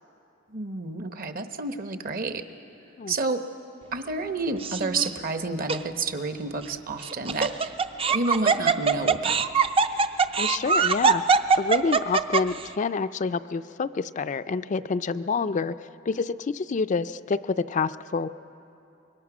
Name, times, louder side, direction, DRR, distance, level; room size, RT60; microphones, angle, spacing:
voice 1, 0.5-2.4 3.1-3.4 3.9-7.7 8.1-9.5, right 3 dB, 50° right, 8 dB, 1.0 m, -30 dB
Laughter, 4.6-5.1 5.7-5.8 7.0-12.6, right 5 dB, 30° right, 0.5 m, -22 dB
voice 2, 10.4-11.2 11.6-15.8 16.1-18.3, left 4 dB, 40° left, 11 dB, 0.4 m, -27 dB
25.0 x 22.0 x 6.1 m, 2.8 s
head